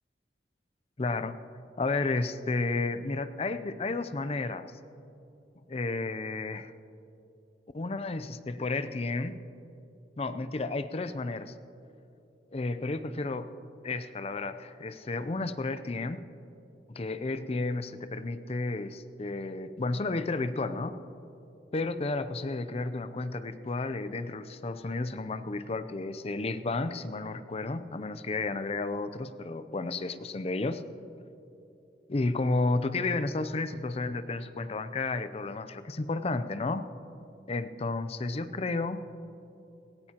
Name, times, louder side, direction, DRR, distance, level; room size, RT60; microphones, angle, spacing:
voice 1, 1.0-1.4 1.8-4.7 5.7-6.7 7.7-9.4 10.2-11.5 12.5-13.5 13.8-16.3 16.9-21.0 21.7-30.8 32.1-36.9 37.5-39.0, left 3 dB, 35° left, 11 dB, 0.5 m, -32 dB
17.5 x 17.0 x 2.9 m, 2.8 s
head